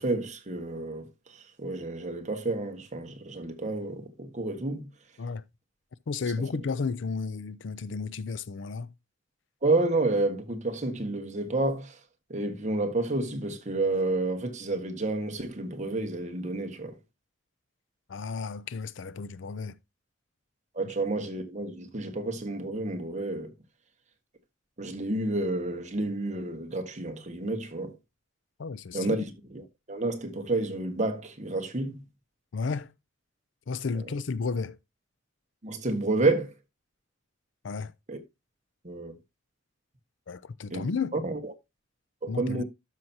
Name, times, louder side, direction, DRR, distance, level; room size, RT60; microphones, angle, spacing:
voice 1, 0.0-4.9 9.6-12.0 12.3-16.9 20.7-23.5 24.8-28.0 28.9-32.0 33.9-34.0 35.6-36.5 38.1-38.2 38.8-39.2 40.7-40.9 41.1-41.5 42.2-42.6, right 2 dB, 40° right, 1.5 m, -30 dB
voice 2, 6.1-8.9 18.1-19.7 28.6-29.2 32.5-32.9 33.7-34.8 37.6-37.9 40.3-41.1 42.3-42.6, left 4 dB, 70° left, 0.5 m, -33 dB
12.5 x 5.9 x 2.8 m
head